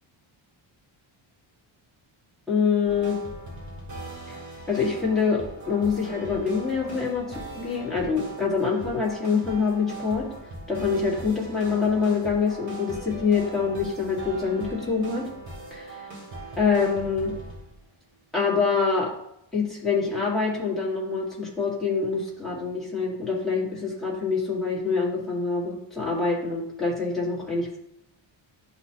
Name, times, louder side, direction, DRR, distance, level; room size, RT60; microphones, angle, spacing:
voice 1, 2.5-3.2 4.3-4.4 4.7-10.3 10.7-15.3 15.7-16.0 16.6-17.3 18.3-19.1 19.5-27.8, left 5 dB, ahead, -7 dB, 1.8 m, -25 dB
sound 1, 2.9-17.8, right 2 dB, 35° right, 2.0 m, -40 dB
11.0 x 4.2 x 2.9 m, 0.78 s
wide cardioid pair, 165°, 50 cm